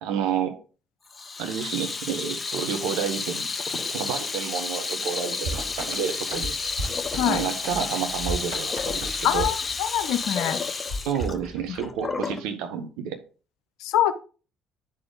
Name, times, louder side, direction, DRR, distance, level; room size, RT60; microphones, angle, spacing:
voice 1, 0.0-0.6 1.4-6.5 7.3-9.5 11.0-13.2, right 8 dB, 65° right, 6 dB, 1.1 m, -30 dB
Water tap faucet / Sink (filling or washing), 1.1-12.4, left 4 dB, 30° left, 0.8 m, -31 dB
sound 1, 5.4-10.3 10.9-12.1, right 1 dB, 85° right, 2.7 m, -35 dB
voice 2, 9.2-10.6 13.8-14.1, left 11 dB, 65° left, 11 dB, 0.6 m, -24 dB
9.5 x 4.2 x 3.8 m, 0.36 s
figure-of-eight pair, 50°, 0 cm